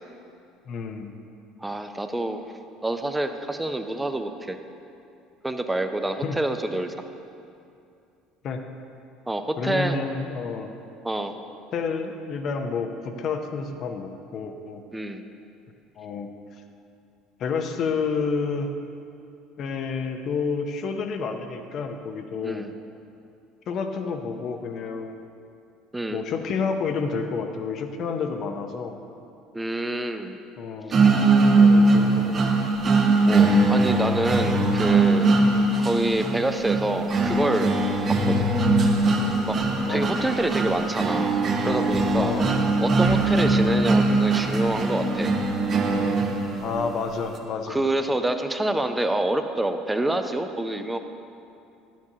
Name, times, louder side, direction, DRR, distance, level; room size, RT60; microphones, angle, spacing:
voice 1, 0.7-1.1 6.2-6.4 8.4-8.6 9.6-10.7 11.7-14.8 16.0-16.3 17.4-18.7 19.6-22.7 23.7-25.2 26.1-29.0 30.6-31.0 31.5-32.4 35.4-35.7 39.8-40.1 42.2-42.6 46.6-47.8, left 5 dB, 55° left, 6 dB, 0.7 m, -29 dB
voice 2, 1.6-4.6 5.4-6.9 9.3-10.0 11.0-11.4 14.9-15.2 22.4-22.7 25.9-26.2 29.5-30.4 33.2-35.3 35.8-37.8 38.1-38.5 39.5-39.6 39.9-41.4 41.6-42.4 42.8-45.3 47.7-51.0, right 1 dB, 10° right, 7 dB, 0.6 m, -27 dB
sound 1, 30.9-46.9, right 2 dB, 45° right, 0.9 m, -21 dB
10.5 x 7.3 x 2.8 m, 2.6 s
hypercardioid pair, 70°, 0 cm